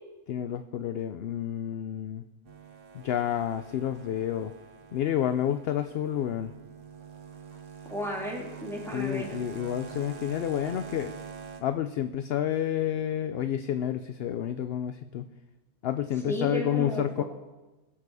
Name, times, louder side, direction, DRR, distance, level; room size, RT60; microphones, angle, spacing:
voice 1, 0.3-2.2 2.9-4.5 4.9-6.5 8.9-11.1 11.6-15.3 15.8-17.2, left 10 dB, 65° left, 10 dB, 0.7 m, -29 dB
sound 1, 2.5-11.6, right 6 dB, 80° right, 1.6 m, -45 dB
voice 2, 7.9-9.4 16.3-17.2, equal, ahead, -2 dB, 2.9 m, -33 dB
21.0 x 7.6 x 4.8 m, 1.1 s
omnidirectional pair, 1.3 m